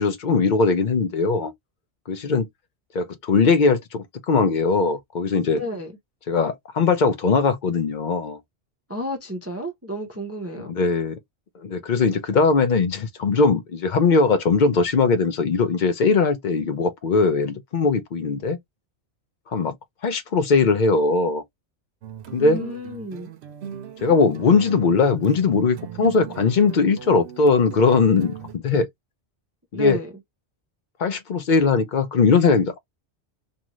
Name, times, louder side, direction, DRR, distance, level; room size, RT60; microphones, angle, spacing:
voice 1, 0.0-1.5 2.1-2.5 2.9-5.6 6.3-8.4 10.6-11.2 11.6-18.6 19.5-19.7 20.0-21.4 22.3-22.6 24.0-28.9 29.7-30.0 31.0-32.8, left 4 dB, 55° left, 0.6 m, -20 dB
voice 2, 5.5-5.9 8.9-10.7 22.4-23.3 29.7-30.1, equal, 20° right, 0.5 m, -32 dB
sound 1, 22.0-28.6, right 8 dB, 75° right, 0.8 m, -38 dB
2.7 x 2.5 x 2.9 m
omnidirectional pair, 1.1 m